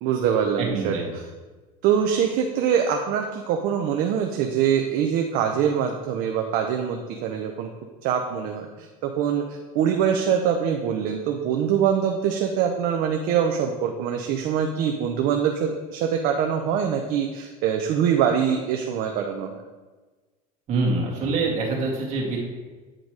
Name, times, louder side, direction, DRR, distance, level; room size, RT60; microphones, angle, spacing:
voice 1, 0.0-1.0 1.8-7.7 8.0-19.6, right 8 dB, 55° right, 3 dB, 0.7 m, -24 dB
voice 2, 0.6-1.1 20.7-22.4, right 3 dB, 40° right, -2 dB, 1.9 m, -25 dB
8.9 x 4.0 x 4.7 m, 1.3 s
supercardioid pair, 140°, 18 cm